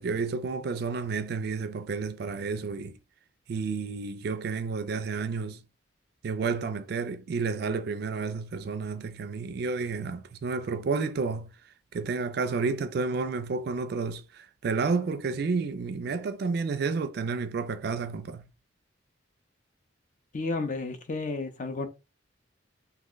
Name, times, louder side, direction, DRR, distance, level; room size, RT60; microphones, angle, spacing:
voice 1, 0.0-3.0 3.5-5.6 6.2-11.5 11.9-18.4, right 4 dB, 55° right, 0.3 m, -31 dB
voice 2, 20.3-21.9, left 3 dB, 40° left, 0.5 m, -32 dB
2.8 x 2.1 x 3.8 m
head